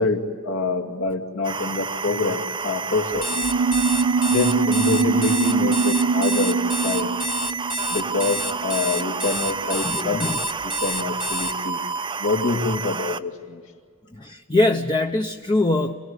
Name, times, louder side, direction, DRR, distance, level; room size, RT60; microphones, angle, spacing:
voice 1, 0.0-3.4 4.3-7.1 7.9-11.9 12.2-13.6, left 3 dB, 70° left, 3 dB, 2.4 m, -26 dB
sound 1, 1.4-13.2, right 5 dB, 20° right, 0.6 m, -30 dB
Alarm, 3.1-11.5, equal, ahead, 1.2 m, -29 dB
sound 2, 3.2-9.2, right 4 dB, 70° right, 0.5 m, -23 dB
voice 2, 9.8-10.4 14.1-15.9, left 2 dB, 20° left, 3 dB, 0.8 m, -22 dB
26.5 x 18.0 x 9.7 m, 2.1 s
head